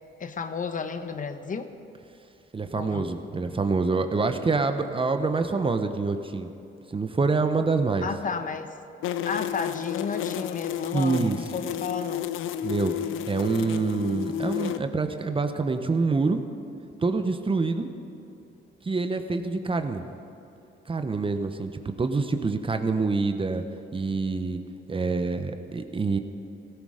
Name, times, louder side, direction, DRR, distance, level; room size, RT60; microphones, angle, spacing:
voice 1, 0.2-1.7 2.7-3.1 8.0-8.7 9.2-12.3, left 5 dB, 40° left, 9 dB, 1.0 m, -32 dB
voice 2, 2.5-6.5 6.9-8.1 10.9-11.4 12.6-12.9 13.3-16.4 17.0-17.9 18.8-20.0 20.9-23.6 23.9-24.6 24.9-26.2, right 4 dB, 25° right, 7 dB, 1.0 m, -26 dB
sound 1, 9.0-14.8, left 10 dB, 85° left, 0.6 m, -31 dB
16.5 x 14.5 x 5.0 m, 2.8 s
cardioid pair, 90°, 20 cm